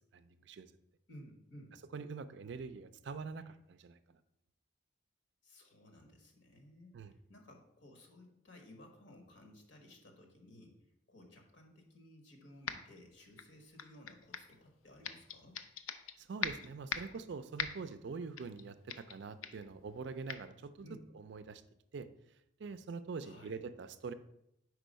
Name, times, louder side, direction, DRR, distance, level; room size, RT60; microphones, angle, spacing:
voice 1, 0.1-0.7 1.9-4.2 6.9-7.1 16.2-20.9 21.1-21.6 21.9-22.1 22.6-24.1, right 4 dB, 60° right, 12 dB, 0.3 m, -44 dB
voice 2, 1.1-1.8 5.4-10.7 11.1-15.6 20.8-21.0 23.2-23.6, left 1 dB, 65° left, 3 dB, 1.1 m, -57 dB
sound 1, 12.7-13.0 13.4-14.6 15.0-16.1 16.4-17.2 17.6-17.9 18.4-18.6 18.9-19.2 19.4-19.7 20.3-20.4, left 7 dB, 85° left, 0.5 m, -40 dB
4.8 x 4.5 x 5.1 m, 0.80 s
head